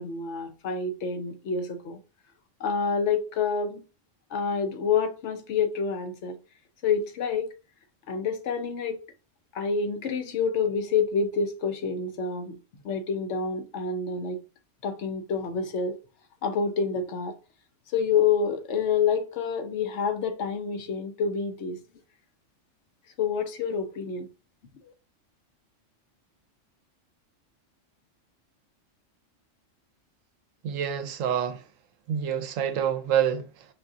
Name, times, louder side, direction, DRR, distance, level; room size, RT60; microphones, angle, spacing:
voice 1, 0.0-2.0 2.6-3.8 4.3-6.4 6.8-7.5 8.1-9.0 9.5-12.6 12.8-14.4 14.8-16.0 16.4-17.3 17.9-21.8 23.2-24.3 24.8-24.9, left 5 dB, 65° left, 1.0 m, -28 dB
voice 2, 30.6-31.6 32.1-33.4, right 9 dB, 85° right, 1.0 m, -26 dB
4.9 x 3.6 x 2.6 m
omnidirectional pair, 1.3 m